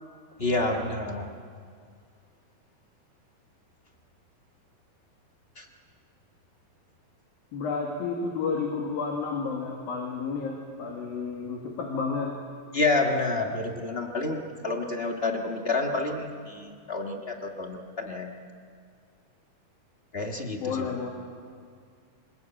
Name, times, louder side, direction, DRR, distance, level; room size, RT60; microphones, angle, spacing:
voice 1, 0.4-1.3 5.6-5.7 12.7-18.4 20.1-20.9, left 3 dB, 45° left, 2 dB, 0.7 m, -29 dB
voice 2, 7.5-12.3 20.6-21.1, left 5 dB, 75° left, 0 dB, 4.0 m, -31 dB
25.5 x 20.5 x 8.9 m, 2.1 s
omnidirectional pair, 4.1 m